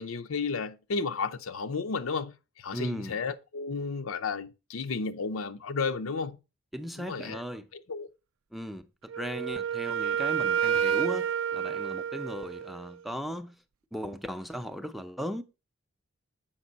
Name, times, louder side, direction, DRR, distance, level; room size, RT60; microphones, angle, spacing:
voice 1, 0.0-6.4 7.0-7.4 7.7-8.1, left 4 dB, 80° left, 0.6 m, -33 dB
voice 2, 2.7-3.1 6.7-7.7 8.5-13.5 13.9-15.4, equal, ahead, 0.5 m, -37 dB
Wind instrument woodwind instrument, 9.1-13.0, right 8 dB, 75° right, 0.4 m, -29 dB
7.3 x 5.2 x 4.0 m
head